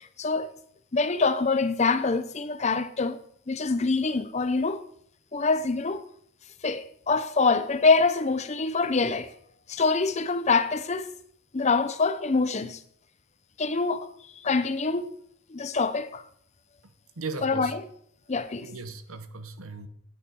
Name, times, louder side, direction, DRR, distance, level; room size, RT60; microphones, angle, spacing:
voice 1, 0.2-0.5 0.9-4.8 5.3-6.0 6.6-9.3 9.7-11.1 11.5-12.8 13.6-14.1 14.4-15.1 15.5-16.2 17.4-17.8 18.3-18.7, left 4 dB, 30° left, 0.6 m, -25 dB
voice 2, 16.8-17.8 18.6-19.9, right 3 dB, 80° right, 1.1 m, -38 dB
9.7 x 8.8 x 5.3 m
head